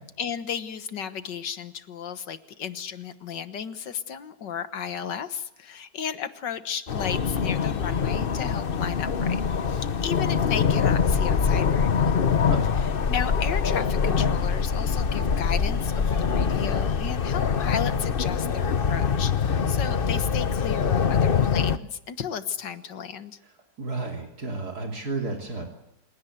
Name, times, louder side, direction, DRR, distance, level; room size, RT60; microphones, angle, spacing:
voice 1, 0.2-9.4 9.7-12.2 13.1-23.4, left 8 dB, 75° left, 11 dB, 1.9 m, -34 dB
sound 1, 6.9-21.8, left 6 dB, 40° left, 0.9 m, -24 dB
voice 2, 23.8-25.6, right 3 dB, 60° right, 2 dB, 3.5 m, -32 dB
27.5 x 17.0 x 8.0 m, 0.88 s
omnidirectional pair, 1.9 m